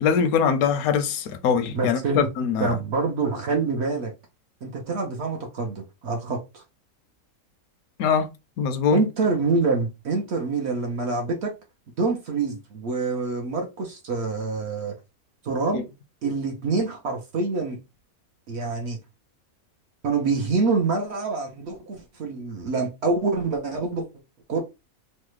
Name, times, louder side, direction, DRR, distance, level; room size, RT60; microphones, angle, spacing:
voice 1, 0.0-2.8 8.0-8.3 8.6-9.0 15.7-15.8, left 7 dB, 85° left, 1.0 m, -22 dB
voice 2, 1.7-2.3 2.6-4.1 4.6-6.6 8.9-11.5 12.0-15.0 15.4-15.9 16.2-17.8 18.5-19.0 20.0-24.1 24.5-24.6, right 4 dB, 60° right, 0.7 m, -26 dB
3.2 x 2.0 x 3.1 m
omnidirectional pair, 1.5 m